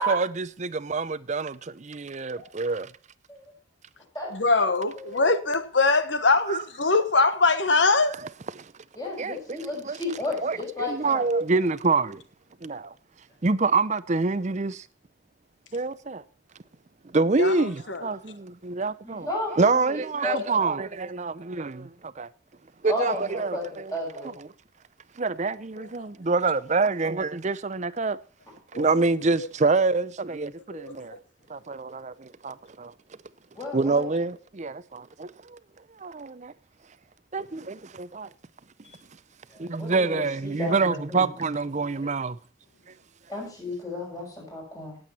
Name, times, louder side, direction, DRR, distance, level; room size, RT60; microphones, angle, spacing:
voice 1, 0.1-2.9 6.5-6.6 8.6-8.7 9.2-10.0 10.4-12.2 12.6-12.9 13.4-14.9 15.7-16.2 17.1-22.3 22.8-24.5 25.2-28.2 28.7-31.2 31.5-32.9 33.7-35.6 36.0-36.5 37.3-38.3 39.6-42.4, right 3 dB, 35° right, 0.6 m, -26 dB
voice 2, 4.3-8.2 17.4-18.0 28.7-28.8 30.7-30.9, left 3 dB, 65° left, 1.3 m, -22 dB
voice 3, 5.0-5.3 8.9-11.3 19.0-20.7 22.9-23.6 23.9-24.3 33.6-34.0 39.8-41.3 43.3-45.0, left 1 dB, 20° left, 6.3 m, -33 dB
17.5 x 7.9 x 4.2 m
head